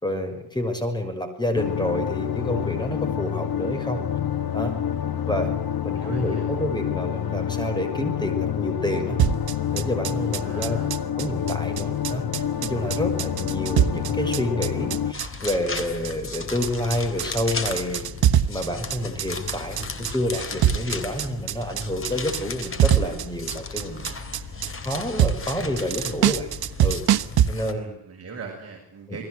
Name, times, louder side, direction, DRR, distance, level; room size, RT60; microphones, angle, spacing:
voice 1, 0.0-4.0 4.5-4.7 5.1-5.5 5.8-9.2 9.7-10.8 11.2-18.1 18.5-24.2 24.8-26.5 26.8-27.0 27.5-27.8 29.1-29.2, left 1 dB, 10° left, 7 dB, 6.0 m, -28 dB
sound 1, 1.6-15.1, left 9 dB, 65° left, 1.4 m, -28 dB
voice 2, 5.9-6.5 10.4-10.9 27.6-29.2, right 5 dB, 40° right, 0 dB, 6.2 m, -40 dB
sound 2, 9.2-27.5, right 10 dB, 70° right, 1.2 m, -24 dB
sound 3, 15.1-27.7, left 4 dB, 35° left, 3.6 m, -36 dB
28.5 x 20.5 x 8.1 m, 0.68 s
cardioid pair, 130°, 39 cm